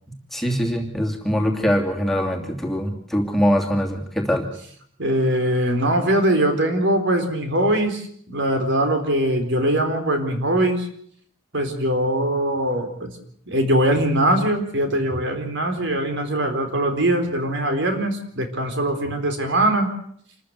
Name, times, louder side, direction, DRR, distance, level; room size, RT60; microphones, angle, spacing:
voice 1, 0.3-4.5, equal, ahead, 1 dB, 2.9 m, -22 dB
voice 2, 5.0-10.9 11.5-13.2 13.5-19.9, right 1 dB, 65° right, 6 dB, 4.1 m, -21 dB
27.5 x 14.5 x 8.1 m, 0.63 s
head